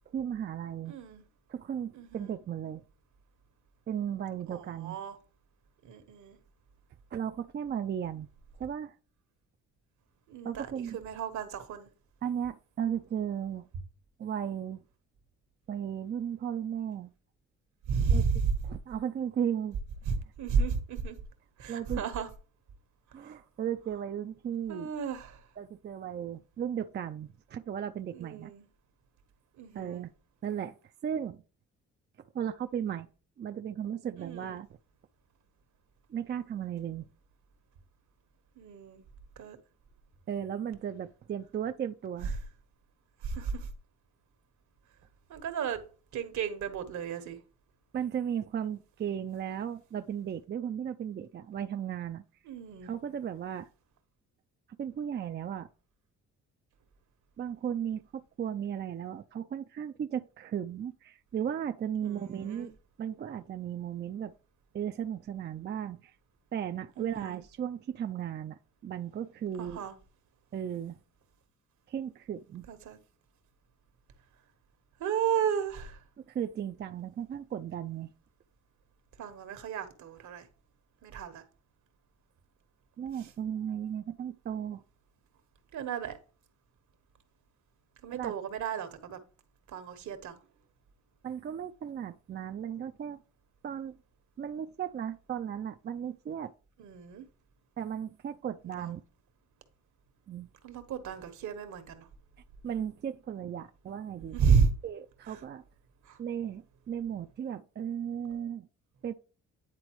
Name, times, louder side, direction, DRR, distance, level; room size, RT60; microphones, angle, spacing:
voice 1, 0.1-0.9 1.5-2.8 3.9-5.0 7.1-8.3 8.6-8.9 10.4-11.0 12.2-13.7 14.2-14.8 15.7-17.1 18.1-18.2 18.7-19.8 21.7-22.0 23.1-24.9 25.6-28.5 29.7-30.1 30.4-30.7 31.0-31.4 32.3-33.1 33.4-34.7 36.1-37.1 40.3-42.3 47.9-52.2 52.8-53.7 54.8-55.7 57.4-62.7 63.0-64.3 64.7-66.2 66.5-69.8 70.5-71.0 71.9-72.7 76.3-78.1 83.0-84.8 88.1-88.3 91.2-93.2 93.6-94.0 94.4-96.5 97.8-99.0 100.3-100.5 102.6-104.4 104.8-105.6 106.2-108.7 109.0-109.1, right 9 dB, 35° right, 0.4 m, -35 dB
voice 2, 0.9-1.2 1.9-2.3 4.5-5.2 5.8-6.4 10.3-11.9 17.9-18.5 20.1-21.2 21.6-22.3 23.2-23.4 24.7-25.5 28.1-28.7 29.6-30.0 34.2-34.6 38.6-39.0 39.4-39.6 43.2-43.7 45.3-45.8 46.1-47.4 52.4-52.9 62.0-62.7 67.0-67.4 69.6-69.9 72.7-73.0 75.0-76.0 79.2-80.5 81.0-81.4 83.2-83.3 85.7-86.2 88.0-89.2 89.7-90.4 96.8-97.2 98.6-98.9 100.6-102.1 104.3-104.7 105.3-105.4 106.0-106.2, right 6 dB, 70° right, 1.3 m, -32 dB
9.7 x 4.0 x 3.0 m
cardioid pair, 90°, 30 cm